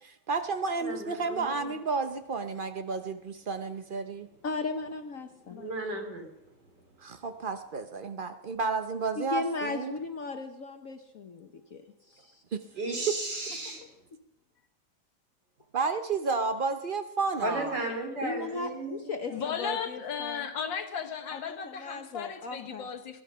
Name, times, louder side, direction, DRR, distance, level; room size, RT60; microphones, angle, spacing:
voice 1, 0.0-4.3 7.0-10.0 12.5-12.6 15.7-17.8, right 4 dB, 90° right, 8 dB, 0.4 m, -31 dB
voice 2, 0.8-1.7 5.5-6.3 12.8-13.8 17.4-19.1, right 2 dB, 55° right, 2 dB, 4.1 m, -34 dB
voice 3, 4.4-5.6 9.2-12.4 18.2-20.4 21.3-22.9, left 3 dB, 50° left, 6 dB, 1.2 m, -37 dB
voice 4, 5.5-6.0 13.7-13.8 19.3-23.2, left 7 dB, 65° left, 8 dB, 1.9 m, -36 dB
21.0 x 11.5 x 5.6 m, 0.84 s
omnidirectional pair, 2.2 m